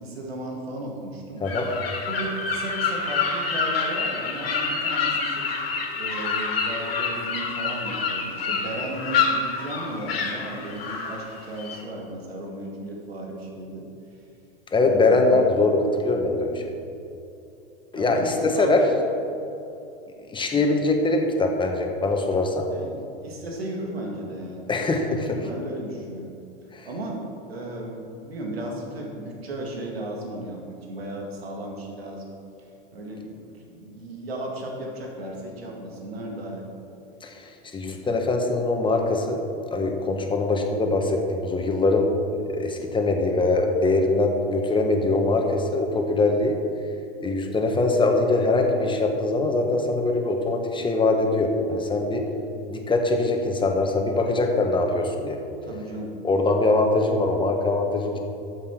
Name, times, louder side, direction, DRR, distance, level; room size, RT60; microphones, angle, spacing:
voice 1, 0.0-1.5 2.1-13.9 14.9-15.5 17.9-18.9 22.7-24.7 25.3-26.3 26.8-32.3 32.9-36.7 55.6-56.2, right 1 dB, 85° right, 0 dB, 2.0 m, -35 dB
sound 1, 1.4-11.8, left 5 dB, 80° left, 2.3 m, -27 dB
voice 2, 14.7-16.6 17.9-18.8 20.3-22.7 24.7-25.4 26.7-26.9 37.2-39.4 39.7-46.6 47.2-52.3 52.7-55.4 56.2-58.2, left 2 dB, 15° left, 3 dB, 1.4 m, -22 dB
12.0 x 7.5 x 4.6 m, 2.8 s
hypercardioid pair, 100°, 30 cm